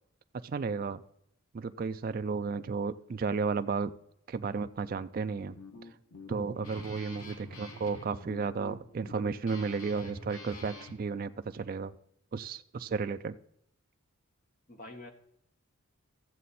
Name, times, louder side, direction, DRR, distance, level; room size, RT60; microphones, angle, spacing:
voice 1, 0.3-1.0 1.5-3.9 4.3-5.6 6.3-11.9 12.3-13.4, right 5 dB, 40° right, 11 dB, 0.3 m, -33 dB
Guitar, 5.2-11.0, left 2 dB, 80° left, 1.5 m, -47 dB
voice 2, 6.5-6.9 14.7-15.1, left 2 dB, 40° left, 5 dB, 1.1 m, -48 dB
14.0 x 7.4 x 4.2 m, 0.75 s
head